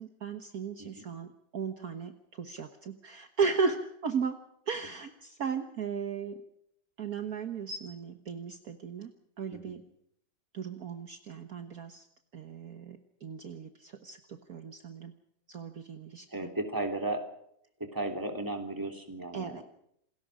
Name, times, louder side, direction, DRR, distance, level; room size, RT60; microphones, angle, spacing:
voice 1, 0.0-4.4 4.7-6.4 7.0-9.8 10.5-12.1 12.3-15.1 15.5-16.5 19.3-19.6, right 5 dB, 55° right, 6 dB, 1.6 m, -36 dB
voice 2, 16.3-17.2 17.8-19.6, right 2 dB, 10° right, 3 dB, 3.2 m, -35 dB
28.0 x 20.5 x 5.0 m, 0.73 s
omnidirectional pair, 2.0 m